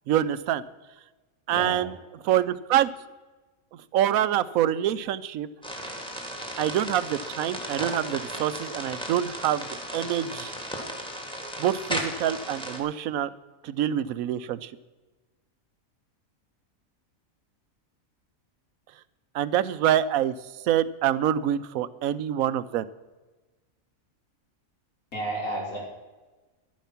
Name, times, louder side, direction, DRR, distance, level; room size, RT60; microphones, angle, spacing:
voice 1, 0.1-0.6 1.5-2.0 2.2-2.9 3.9-5.5 6.6-9.7 9.9-10.5 11.6-13.3 13.6-14.7 19.3-20.3 20.6-22.9, right 11 dB, 85° right, 15 dB, 1.1 m, -25 dB
voice 2, 1.5-1.8 25.1-25.8, right 1 dB, 85° left, -4 dB, 3.9 m, -31 dB
sound 1, 5.6-12.8, equal, 5° left, 2.0 m, -35 dB
11.5 x 10.5 x 5.8 m, 1.2 s
omnidirectional pair, 1.4 m